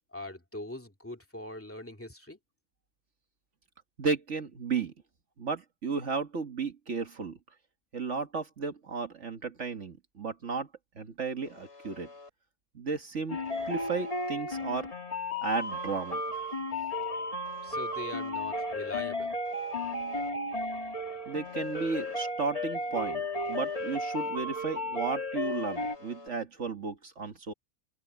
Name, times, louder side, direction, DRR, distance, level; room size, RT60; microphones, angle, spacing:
voice 1, 0.1-2.4 17.6-19.3, left 1 dB, 10° left, 2.4 m, -41 dB
voice 2, 4.0-4.9 5.4-7.4 7.9-10.7 11.0-12.1 12.7-13.4 13.7-14.9 15.4-16.2 21.3-23.2 23.5-27.5, right 4 dB, 55° right, 1.8 m, -34 dB
Alarm, 11.5-12.3 13.5-14.3 15.5-16.3 17.5-18.3 19.5-20.3 21.5-22.3 23.5-24.3 25.5-26.3, left 3 dB, 50° left, 6.1 m, -51 dB
sound 1, 13.3-26.0, left 1 dB, 25° left, 2.0 m, -34 dB
open air
omnidirectional pair, 1.5 m